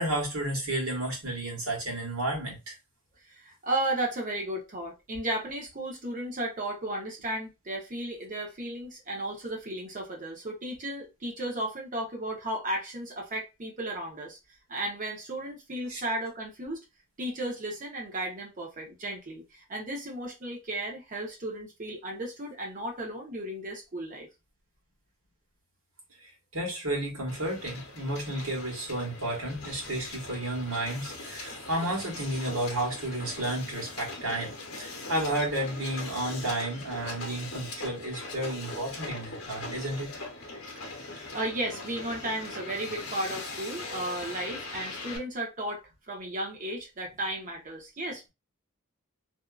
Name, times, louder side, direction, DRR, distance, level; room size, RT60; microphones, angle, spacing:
voice 1, 0.0-2.7 15.9-16.0 26.2-40.1, right 1 dB, 70° right, 1.3 m, -32 dB
voice 2, 3.3-14.4 14.7-16.8 17.2-24.3 40.7-48.3, right 1 dB, 40° right, 0.8 m, -34 dB
Hiss, 27.3-45.2, left 2 dB, 70° left, 0.9 m, -41 dB
2.7 x 2.4 x 2.3 m
head